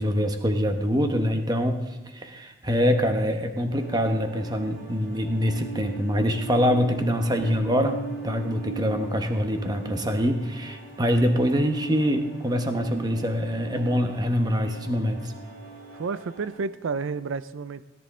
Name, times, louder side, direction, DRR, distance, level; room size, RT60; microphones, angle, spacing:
voice 1, 0.0-15.3, equal, 20° right, 6 dB, 1.0 m, -25 dB
sound 1, 3.7-16.5, right 3 dB, 50° right, 4.0 m, -40 dB
voice 2, 15.9-17.8, right 4 dB, 85° right, 14 dB, 0.4 m, -30 dB
17.5 x 10.5 x 3.7 m, 1.1 s
head